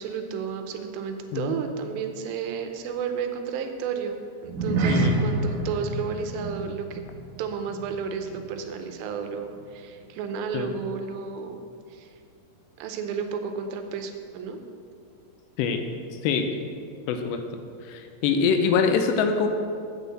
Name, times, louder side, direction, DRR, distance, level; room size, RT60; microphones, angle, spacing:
voice 1, 0.0-7.0 7.4-11.6 11.9-12.1 12.8-14.6, right 6 dB, 90° right, 6 dB, 3.0 m, -32 dB
sound 1, 4.4-9.1 9.3-9.6 10.1-10.2, right 2 dB, 70° right, 2.3 m, -29 dB
voice 2, 17.1-17.4 17.9-19.5, left 5 dB, 90° left, 6 dB, 2.9 m, -24 dB
9.0 x 5.6 x 7.5 m, 2.3 s
omnidirectional pair, 4.8 m